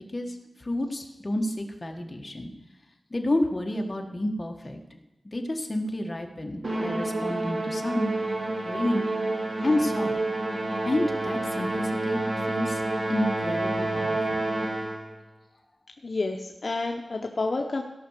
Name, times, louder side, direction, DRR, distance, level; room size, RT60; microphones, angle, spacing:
voice 1, 0.0-2.5 3.1-4.8 5.2-8.1 8.6-9.1 9.6-10.2 10.8-12.8 13.1-14.4, left 1 dB, 30° left, 3 dB, 1.5 m, -30 dB
Musical instrument, 6.6-15.1, right 2 dB, 50° right, 2.3 m, -29 dB
voice 2, 16.0-17.8, left 3 dB, 50° left, 2 dB, 0.8 m, -29 dB
16.5 x 6.0 x 6.6 m, 0.99 s
wide cardioid pair, 95°, 0 cm